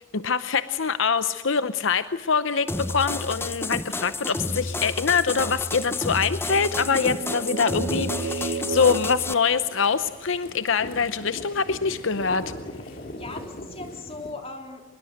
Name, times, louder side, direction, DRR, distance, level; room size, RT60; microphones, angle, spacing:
voice 1, 0.0-12.4, left 5 dB, 70° left, 12 dB, 0.8 m, -24 dB
sound 1, 2.7-9.3, left 2 dB, 10° left, 0.6 m, -31 dB
sound 2, 3.5-14.3, left 1 dB, 45° left, 3.3 m, -43 dB
sound 3, 6.3-10.2, right 4 dB, 70° right, 0.8 m, -33 dB
voice 2, 12.9-14.8, left 3 dB, 30° left, 3 dB, 3.3 m, -39 dB
23.5 x 22.5 x 6.5 m, 1.3 s
head